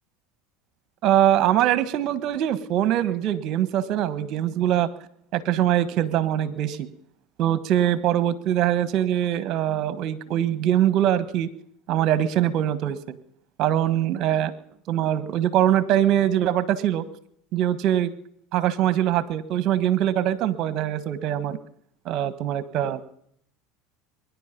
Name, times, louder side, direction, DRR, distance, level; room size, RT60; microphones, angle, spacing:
voice 1, 1.0-4.9 5.3-6.9 7.4-11.5 11.9-13.2 13.6-14.5 14.9-17.0 17.5-18.1 18.5-21.6 22.0-23.0, right 11 dB, 55° right, 15 dB, 1.4 m, -23 dB
23.0 x 10.5 x 5.3 m, 0.69 s
supercardioid pair, 100°, 0 cm